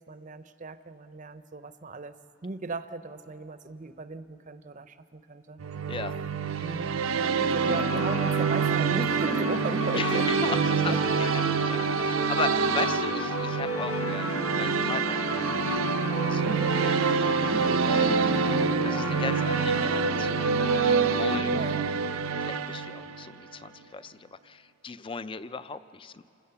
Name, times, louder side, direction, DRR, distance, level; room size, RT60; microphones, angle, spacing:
voice 1, 0.0-2.1 2.4-5.6 6.6-6.9 7.2-11.0 16.4-16.8 17.5-17.8 21.5-21.8, right 3 dB, 40° right, 12 dB, 0.6 m, -36 dB
sound 1, 5.6-23.3, right 6 dB, 85° right, 0.6 m, -27 dB
sound 2, 7.7-21.4, left 2 dB, 75° left, 1.2 m, -33 dB
voice 2, 9.9-15.8 16.0-17.5 17.8-18.2 18.8-20.6 20.8-21.6 22.4-26.2, left 4 dB, 25° left, 13 dB, 0.4 m, -37 dB
27.5 x 16.5 x 6.9 m, 3.0 s
head